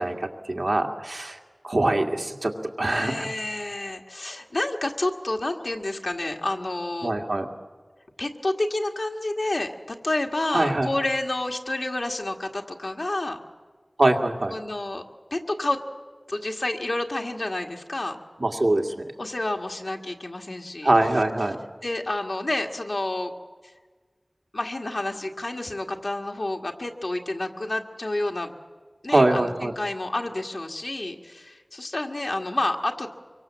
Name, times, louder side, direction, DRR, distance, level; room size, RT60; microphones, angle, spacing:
voice 1, 0.0-1.4 1.6-2.5 2.8-3.3 7.0-7.5 10.5-11.0 14.0-14.5 18.4-19.0 20.8-21.6 29.1-29.8, right 2 dB, 85° right, 2 dB, 2.2 m, -23 dB
voice 2, 2.9-7.1 8.2-13.4 14.5-15.0 15.3-15.8 16.3-18.2 19.2-20.9 21.8-23.3 24.5-28.5 29.0-33.1, left 2 dB, 85° left, 3 dB, 1.9 m, -29 dB
25.0 x 23.5 x 7.6 m, 1.5 s
wide cardioid pair, 45°, 0 cm